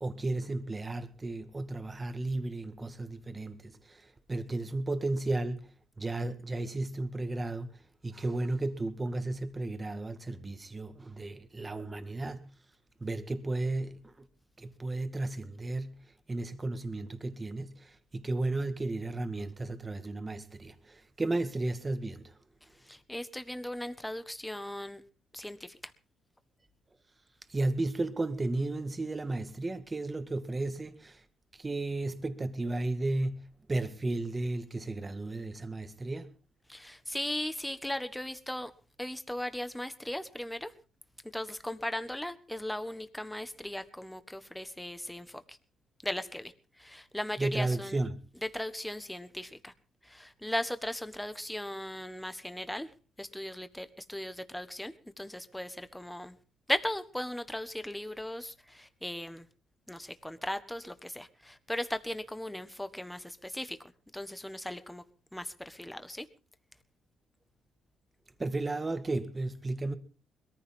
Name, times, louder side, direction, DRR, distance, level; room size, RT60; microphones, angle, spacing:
voice 1, 0.0-12.6 13.0-14.3 14.6-16.0 16.3-22.4 27.5-31.2 31.5-36.3 47.4-48.2 68.4-69.9, right 2 dB, 25° right, 1.9 m, -34 dB
voice 2, 22.8-25.0 25.3-25.9 36.7-38.7 39.0-40.7 41.3-45.6 46.0-48.0 48.3-49.7 50.0-52.9 53.2-56.4 56.7-59.5 59.9-63.8 64.1-65.0 65.3-66.3, left 1 dB, 5° left, 1.5 m, -37 dB
21.5 x 14.5 x 3.8 m
cardioid pair, 90°, 0 cm